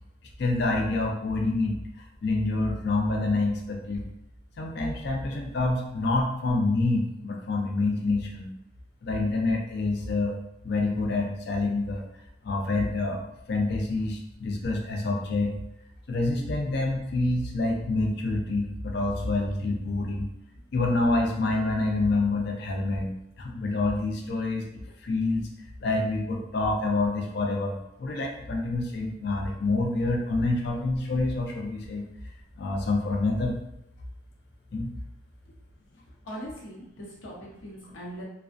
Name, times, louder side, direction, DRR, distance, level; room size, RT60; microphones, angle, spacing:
voice 1, 0.4-4.0 4.6-8.5 9.0-10.3 10.6-12.0 12.4-13.2 13.5-15.5 16.1-20.3 20.7-24.7 25.0-25.5 25.8-32.0 32.6-33.6 34.7-34.9, left 2 dB, 55° left, 1 dB, 0.4 m, -27 dB
voice 2, 36.2-38.2, equal, 75° left, -5 dB, 0.8 m, -40 dB
2.4 x 2.1 x 2.4 m, 0.80 s
head